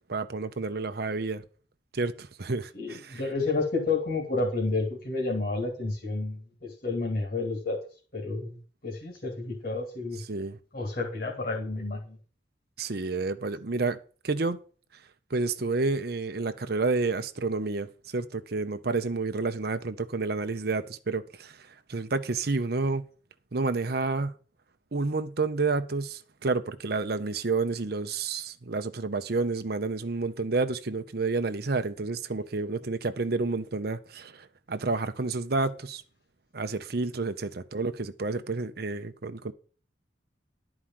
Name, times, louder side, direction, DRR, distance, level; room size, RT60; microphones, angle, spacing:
voice 1, 0.1-1.4 1.9-3.2 10.3-10.6 12.8-14.0 14.2-14.6 15.3-23.0 23.5-24.3 24.9-36.0 36.5-39.5, right 3 dB, 55° right, 0.7 m, -30 dB
voice 2, 2.7-7.8 8.1-10.2 10.7-12.2, left 3 dB, 50° left, 2.3 m, -30 dB
11.5 x 4.9 x 7.5 m
head